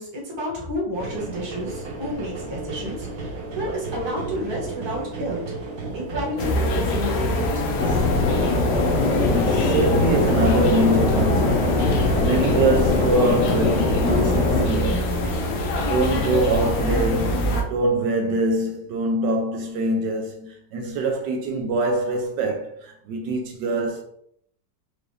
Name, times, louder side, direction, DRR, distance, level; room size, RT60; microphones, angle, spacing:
voice 1, 0.0-5.4 5.9-8.1, equal, 15° right, 1.0 m, -31 dB
sound 1, 0.9-17.6, right 2 dB, 60° right, 1.1 m, -33 dB
sound 2, 6.4-17.6, left 1 dB, 85° left, 1.4 m, -25 dB
sound 3, 7.8-14.7, left 3 dB, 50° left, 0.9 m, -22 dB
voice 2, 9.2-15.3 15.8-24.0, right 2 dB, 75° right, 1.2 m, -24 dB
4.8 x 2.5 x 3.2 m
omnidirectional pair, 2.0 m